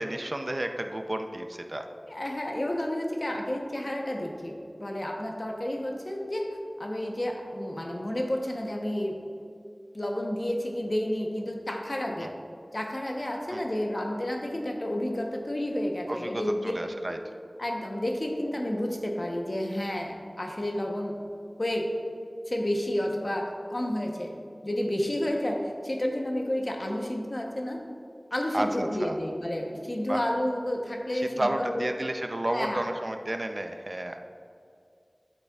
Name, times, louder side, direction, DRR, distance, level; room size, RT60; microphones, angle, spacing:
voice 1, 0.0-1.8 12.2-12.3 13.5-13.6 16.1-17.2 28.5-29.2 30.1-30.2 31.1-34.2, right 1 dB, 45° right, 6 dB, 0.5 m, -32 dB
voice 2, 2.1-9.1 9.9-12.3 12.7-16.7 17.6-21.1 21.6-21.9 22.5-24.3 24.6-27.8 28.3-31.9 32.5-32.8, left 1 dB, 50° left, 1 dB, 0.9 m, -30 dB
8.6 x 8.2 x 2.3 m, 2.4 s
wide cardioid pair, 45°, 0 cm